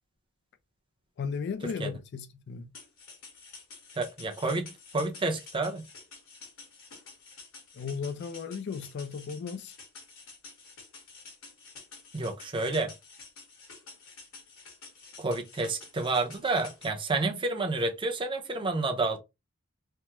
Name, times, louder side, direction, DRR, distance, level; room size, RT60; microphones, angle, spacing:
voice 1, 1.2-2.7 7.7-9.8, left 5 dB, 55° left, 0.3 m, -35 dB
sound 1, 2.7-16.9, left 4 dB, 80° left, 1.5 m, -50 dB
voice 2, 4.0-5.9 12.1-12.9 15.2-19.2, right 3 dB, 25° right, 0.6 m, -30 dB
3.4 x 2.0 x 2.9 m
head